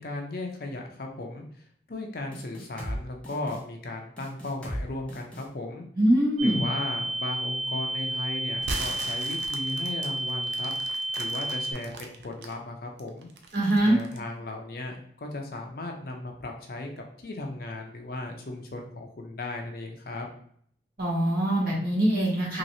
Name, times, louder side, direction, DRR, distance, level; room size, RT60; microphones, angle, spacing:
voice 1, 0.0-5.9 6.4-13.3 13.8-20.3, left 2 dB, 55° left, 2 dB, 0.5 m, -36 dB
sound 1, 2.3-3.0 3.2-3.6 4.2-4.8 5.1-5.4, equal, 5° left, 0.6 m, -37 dB
voice 2, 6.0-6.7 13.5-14.0 21.0-22.6, right 1 dB, 55° right, -6 dB, 1.4 m, -23 dB
sound 2, 6.4-11.7, right 1 dB, 35° right, 1.2 m, -31 dB
sound 3, 8.6-12.5 13.0-14.3, right 3 dB, 75° right, 0.5 m, -38 dB
3.1 x 3.0 x 2.6 m, 0.62 s
head